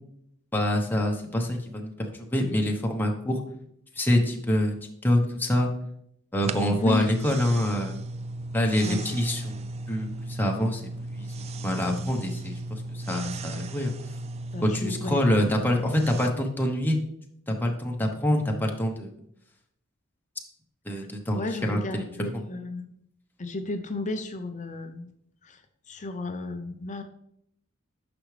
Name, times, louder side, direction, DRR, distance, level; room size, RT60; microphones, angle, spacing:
voice 1, 0.5-1.9 2.3-3.4 4.0-4.7 5.0-5.7 6.3-8.0 8.5-10.8 11.1-13.9 14.6-17.0 17.5-19.1 20.9-22.4, left 1 dB, 10° left, 1 dB, 1.0 m, -26 dB
sound 1, 6.4-16.3, right 2 dB, 30° right, 0.3 m, -36 dB
voice 2, 6.7-7.1 8.8-9.2 14.5-15.2 21.3-23.0 23.4-25.1 25.4-25.6 25.9-27.0, left 2 dB, 35° left, 7 dB, 0.6 m, -33 dB
10.0 x 6.0 x 3.3 m, 0.73 s
head